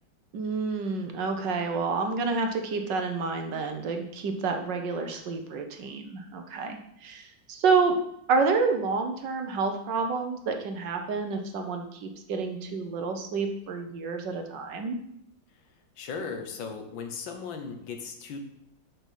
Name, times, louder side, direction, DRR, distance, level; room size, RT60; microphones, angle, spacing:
voice 1, 0.3-7.9 8.3-15.0, right 4 dB, 70° right, 5 dB, 1.6 m, -29 dB
voice 2, 16.0-18.4, left 5 dB, 80° left, 5 dB, 1.8 m, -37 dB
7.3 x 5.6 x 5.5 m, 0.73 s
omnidirectional pair, 2.1 m